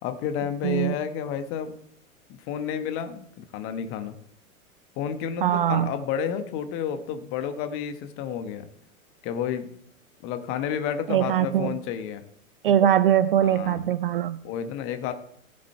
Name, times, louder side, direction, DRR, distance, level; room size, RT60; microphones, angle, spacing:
voice 1, 0.0-1.7 2.5-4.1 5.0-8.7 9.2-9.7 10.2-12.2 13.4-13.9 14.4-15.1, left 8 dB, 30° left, 9 dB, 1.1 m, -31 dB
voice 2, 0.6-0.9 5.4-5.9 11.1-11.7 12.6-14.4, right 10 dB, 45° right, 16 dB, 0.4 m, -22 dB
15.5 x 7.7 x 4.4 m, 0.68 s
figure-of-eight pair, 100°, 42 cm